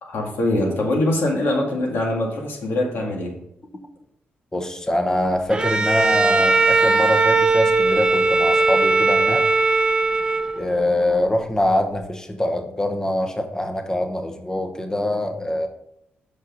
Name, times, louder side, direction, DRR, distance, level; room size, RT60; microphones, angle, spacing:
voice 1, 0.0-3.3, left 1 dB, 70° left, 0 dB, 2.0 m, -23 dB
voice 2, 4.5-9.5 10.6-15.7, left 1 dB, 15° left, 5 dB, 0.9 m, -24 dB
Bowed string instrument, 5.5-10.8, right 3 dB, 25° right, 0.6 m, -19 dB
6.2 x 5.6 x 5.1 m, 0.78 s
cardioid pair, 100°, 4 cm